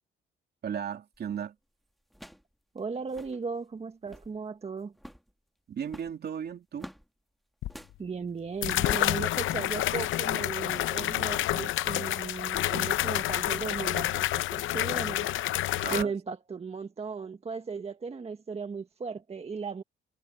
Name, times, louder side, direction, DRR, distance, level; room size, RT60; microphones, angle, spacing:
voice 1, 0.6-1.6 5.7-6.9 15.8-16.1, right 8 dB, 55° right, 2.8 m, -35 dB
sound 1, 1.1-1.4 2.1-2.5 2.8-2.9 3.0-3.4 3.9-4.4 4.9-5.3 5.8-7.1 7.7-8.0 8.6-8.9 9.5-9.7, equal, ahead, 1.9 m, -49 dB
voice 2, 2.7-4.9 8.0-15.3 15.9-19.8, right 5 dB, 30° right, 1.4 m, -36 dB
sound 2, 7.6-7.7 8.6-16.0, left 14 dB, 80° left, 0.7 m, -29 dB
cardioid pair, 90°, 20 cm